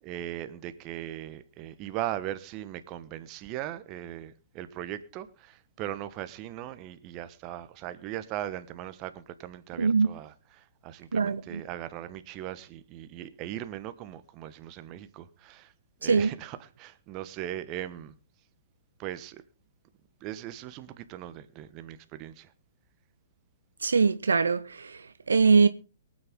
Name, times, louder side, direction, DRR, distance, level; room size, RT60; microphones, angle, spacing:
voice 1, 0.0-15.7 16.0-18.1 19.0-19.4 20.2-22.5, right 12 dB, 30° right, 1.3 m, -39 dB
voice 2, 9.8-10.1 11.1-11.6 16.0-16.3 23.8-25.7, right 5 dB, 70° right, 0.7 m, -23 dB
23.5 x 9.0 x 3.6 m
figure-of-eight pair, 120°, 0 cm